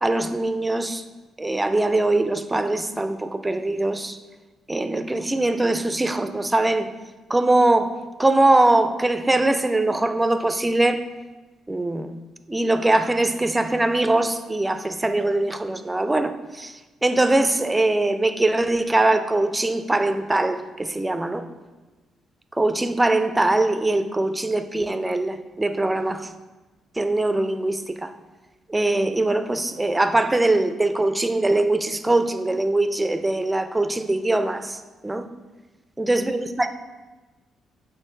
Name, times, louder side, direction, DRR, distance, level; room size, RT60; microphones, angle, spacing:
voice 1, 0.0-1.0 1.4-4.2 4.7-6.9 7.3-11.1 11.7-12.1 12.5-21.4 22.6-26.3 27.0-28.1 28.7-35.3 36.0-36.7, right 2 dB, 15° right, 9 dB, 0.4 m, -22 dB
6.6 x 3.8 x 4.5 m, 1.2 s
cardioid pair, 90°, 0 cm